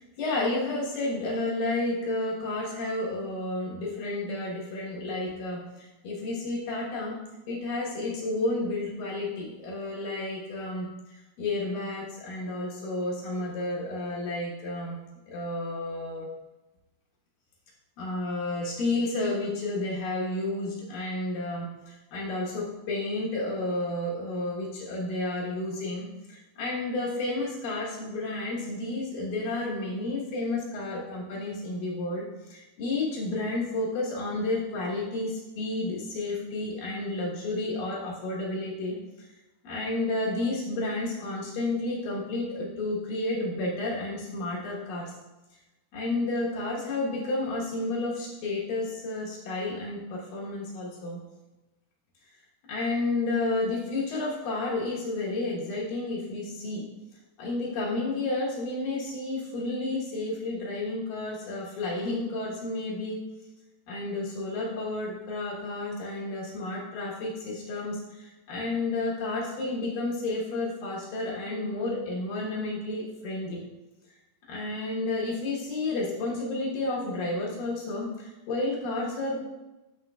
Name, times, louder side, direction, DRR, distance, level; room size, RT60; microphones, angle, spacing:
voice 1, 0.0-7.2 7.5-10.9 11.4-15.0 15.3-16.3 18.0-39.3 39.6-45.1 45.9-51.2 52.7-56.9 57.4-63.2 63.9-73.6 74.5-79.5, left 2 dB, 80° left, -5 dB, 2.9 m, -31 dB
12.5 x 4.4 x 2.3 m, 1.1 s
omnidirectional pair, 3.9 m